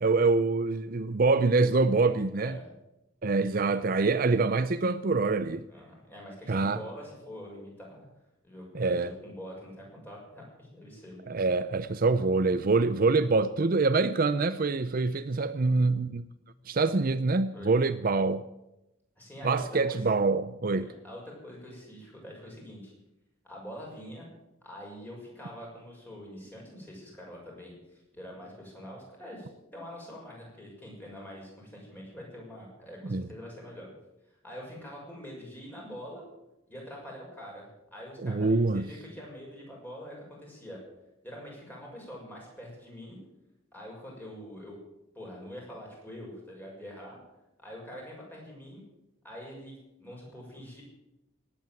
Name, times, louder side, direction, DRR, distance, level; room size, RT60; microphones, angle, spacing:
voice 1, 0.0-2.6 3.2-5.7 6.5-6.8 8.7-9.1 11.3-16.2 16.7-18.5 19.4-20.9 33.0-33.3 38.2-38.9, right 3 dB, 45° right, 13 dB, 0.6 m, -25 dB
voice 2, 2.4-2.7 5.7-8.1 8.4-11.3 17.5-17.7 19.2-20.0 20.7-22.9 23.4-24.3 24.6-33.9 34.4-36.2 36.7-40.8 41.2-43.2 43.7-44.8 45.1-47.2 47.6-48.8 49.2-49.7 50.0-50.8, equal, 10° left, -2 dB, 6.3 m, -45 dB
18.5 x 8.7 x 9.0 m, 0.92 s
head